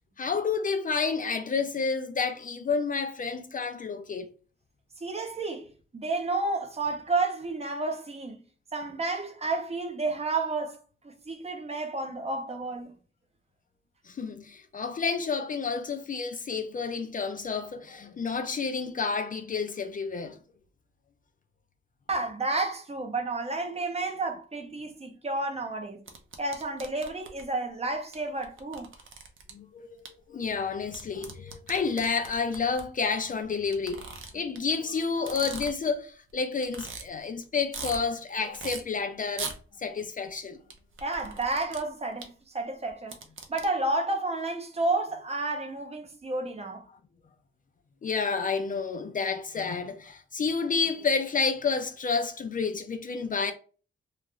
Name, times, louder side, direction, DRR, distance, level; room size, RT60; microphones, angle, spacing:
voice 1, 0.2-4.3 14.1-20.4 29.5-29.9 30.3-39.5 39.8-40.6 48.0-53.5, left 5 dB, 40° left, 0.4 m, -30 dB
voice 2, 5.0-5.7 5.9-8.4 8.7-10.8 11.0-12.9 22.1-26.0 26.4-28.9 41.0-43.2 43.5-46.8, right 2 dB, 30° right, 0.6 m, -31 dB
sound 1, 26.1-27.4 28.1-28.2 28.4-29.5 30.1-30.2 30.9-32.8 33.7-34.6 35.1-35.9 36.3-36.4 36.6-37.0 37.4-38.0 38.5-38.8 39.3-39.6 40.7-41.8 42.2-42.3 42.9-43.7, right 5 dB, 70° right, 0.6 m, -39 dB
2.4 x 2.4 x 2.9 m
wide cardioid pair, 100°, 21 cm